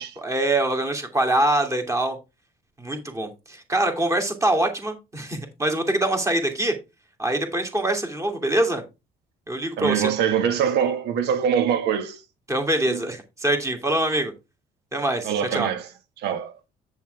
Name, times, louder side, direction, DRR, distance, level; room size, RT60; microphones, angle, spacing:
voice 1, 0.0-2.2 2.8-6.7 7.2-8.8 9.5-10.1 12.5-14.3 14.9-15.7, right 1 dB, 20° right, 2.7 m, -24 dB
voice 2, 9.8-12.2 12.9-13.0 15.2-15.8 16.2-16.5, right 8 dB, 80° right, 1.7 m, -23 dB
8.1 x 7.2 x 3.5 m
cardioid pair, 110°, 17 cm